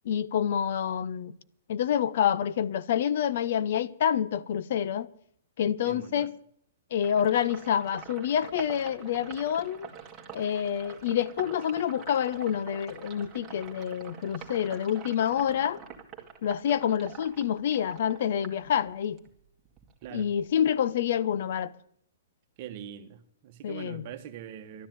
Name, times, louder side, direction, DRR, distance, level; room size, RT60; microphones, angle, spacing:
voice 1, 0.0-1.3 1.7-5.1 5.6-6.3 6.9-9.9 10.3-15.8 16.4-19.2 20.1-21.7 23.6-24.0, left 9 dB, 50° left, 0.6 m, -27 dB
voice 2, 5.8-6.3 20.0-20.3 22.6-24.9, right 10 dB, 35° right, 1.3 m, -42 dB
Sink (filling or washing), 7.0-19.3 19.6-21.1, right 6 dB, 15° right, 1.8 m, -46 dB
13.0 x 10.0 x 9.3 m
hypercardioid pair, 165°, 0 cm